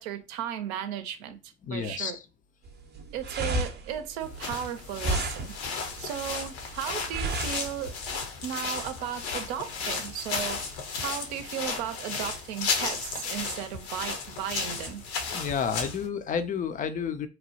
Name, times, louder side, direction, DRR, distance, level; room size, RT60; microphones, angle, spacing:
voice 1, 0.0-1.4 1.7-2.2 3.1-5.5 6.0-8.0 8.4-15.0, right 9 dB, 70° right, 0.6 m, -35 dB
voice 2, 1.6-2.1 15.3-17.3, left 6 dB, 25° left, 0.4 m, -30 dB
sound 1, 2.6-8.2, right 2 dB, 30° right, 0.6 m, -33 dB
sound 2, 4.2-16.1, left 5 dB, 70° left, 0.8 m, -34 dB
2.9 x 2.1 x 2.7 m
hypercardioid pair, 70°, 33 cm